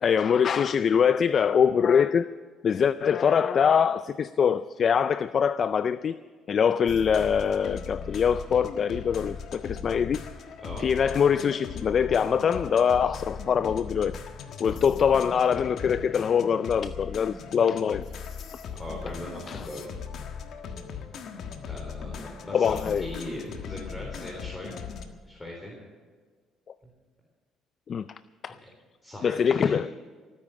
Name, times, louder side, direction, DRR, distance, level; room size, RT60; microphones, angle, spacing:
voice 1, 0.0-2.3 2.6-6.2 6.5-10.2 10.8-14.2 14.6-18.1 19.5-19.7 22.5-23.1 27.9-28.6 29.2-29.9, left 7 dB, 50° left, 15 dB, 0.4 m, -23 dB
sound 1, 6.9-25.1, left 6 dB, 65° left, 1.5 m, -39 dB
voice 2, 18.7-19.9 21.6-24.8 25.3-25.7 28.6-28.7 29.0-29.8, left 1 dB, 20° left, -2 dB, 4.1 m, -39 dB
18.0 x 9.9 x 7.4 m, 1.5 s
cardioid pair, 85°, 0 cm